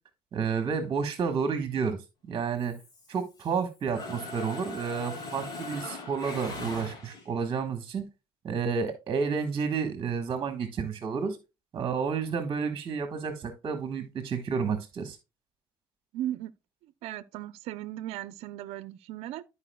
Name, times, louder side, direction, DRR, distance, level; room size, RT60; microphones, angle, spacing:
voice 1, 0.3-2.8 3.1-8.0 8.4-11.4 11.7-15.2, right 6 dB, 40° right, 1.4 m, -30 dB
Mechanisms, 2.6-3.6 3.9-7.4, left 2 dB, 40° left, 3.3 m, -40 dB
voice 2, 16.1-16.5 16.8-19.4, right 13 dB, 75° right, 0.6 m, -37 dB
13.5 x 4.9 x 2.2 m
cardioid pair, 100°, 11 cm